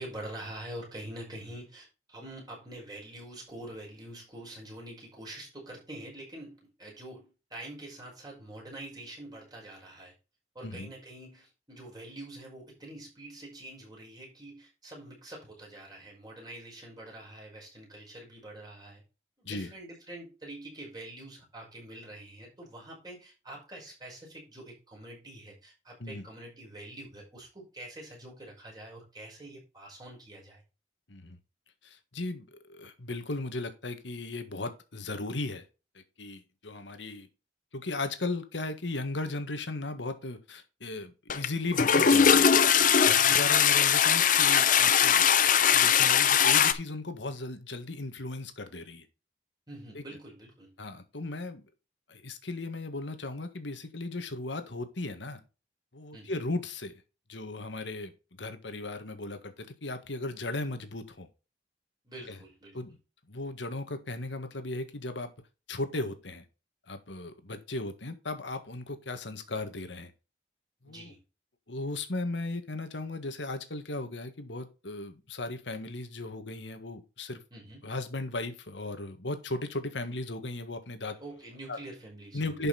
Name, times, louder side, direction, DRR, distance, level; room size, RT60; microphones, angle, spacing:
voice 1, 0.0-10.1 10.5-19.0 19.4-30.6 43.1-43.4 49.7-50.7 56.1-56.4 62.0-62.8 70.9-71.2 77.5-77.8 81.2-82.7, right 1 dB, 20° right, -3 dB, 5.5 m, -45 dB
voice 2, 31.8-35.6 35.9-37.3 37.7-42.5 43.1-45.2 45.7-49.0 49.9-50.0 50.8-51.6 52.1-55.4 55.9-56.9 57.3-58.1 58.4-61.3 62.7-63.0 63.3-65.3 65.7-66.4 66.9-70.1 70.8-71.1 71.7-77.4 77.8-81.2 81.7-81.8 82.3-82.7, left 2 dB, 90° left, 8 dB, 1.7 m, -36 dB
Toilet flush, 41.3-41.5 41.7-46.7, left 8 dB, 45° left, 0.7 m, -21 dB
11.5 x 5.6 x 4.1 m, 0.31 s
head